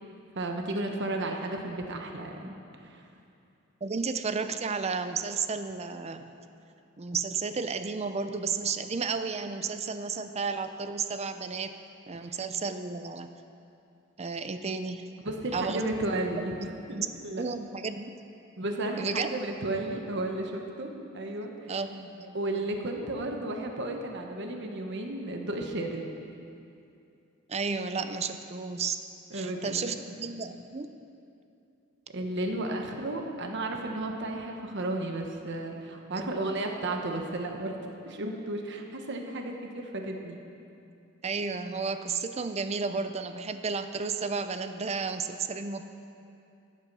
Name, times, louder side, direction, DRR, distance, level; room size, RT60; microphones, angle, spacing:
voice 1, 0.3-3.1 12.2-12.4 15.2-17.0 17.2-17.4 18.6-21.7 22.3-26.1 29.3-30.1 32.1-40.4, right 2 dB, 60° right, 3 dB, 1.1 m, -33 dB
voice 2, 3.8-6.3 7.0-11.7 12.1-13.3 14.2-15.1 15.5-16.1 16.6-17.1 17.3-18.1 19.0-19.3 21.7-22.4 27.5-29.0 29.3-31.0 36.2-36.3 41.2-45.8, right 5 dB, 30° right, 9 dB, 0.5 m, -32 dB
14.0 x 8.6 x 5.5 m, 2.6 s
head